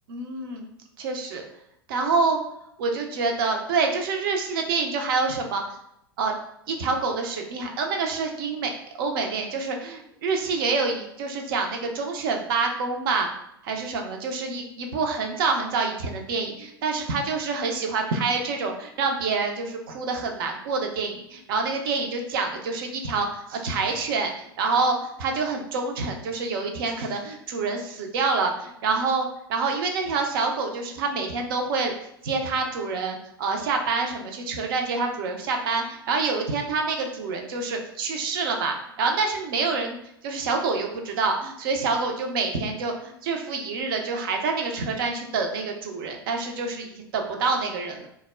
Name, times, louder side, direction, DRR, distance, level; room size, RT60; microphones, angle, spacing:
voice 1, 0.1-0.7 1.0-1.4 1.9-2.4 2.8-5.6 6.2-6.4 6.7-13.3 13.6-31.9 32.2-40.0 40.2-48.1, right 4 dB, 65° right, 3 dB, 0.5 m, -27 dB
2.2 x 2.0 x 3.2 m, 0.78 s
hypercardioid pair, 90°, 13 cm